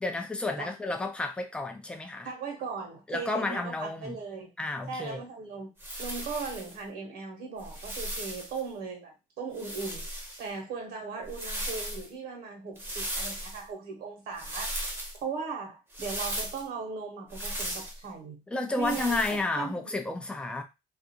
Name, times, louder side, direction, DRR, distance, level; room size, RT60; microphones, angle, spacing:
voice 1, 0.0-2.3 3.1-4.2 4.6-5.2 18.5-20.6, left 2 dB, 5° left, 0.4 m, -31 dB
voice 2, 2.2-4.5 4.9-5.7 6.0-10.1 10.4-14.8 15.2-18.4 18.8-19.7, right 5 dB, 70° right, 1.0 m, -38 dB
sound 1, 5.8-6.8 7.6-8.6 9.5-10.5 11.3-12.1 12.8-13.6 14.4-15.2 15.9-16.6 17.3-18.0 18.8-19.4, right 1 dB, 15° right, 0.8 m, -36 dB
2.4 x 2.3 x 2.8 m
cardioid pair, 110°, 17 cm